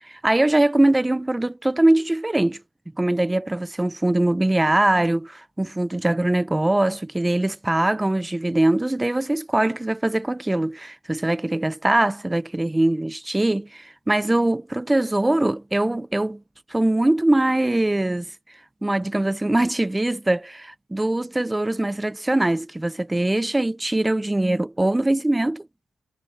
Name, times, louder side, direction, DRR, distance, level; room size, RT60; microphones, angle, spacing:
voice 1, 0.1-2.6 3.0-16.4 16.7-18.3 18.8-25.7, right 1 dB, 10° right, 0.8 m, -22 dB
cardioid pair, 120°, 0 cm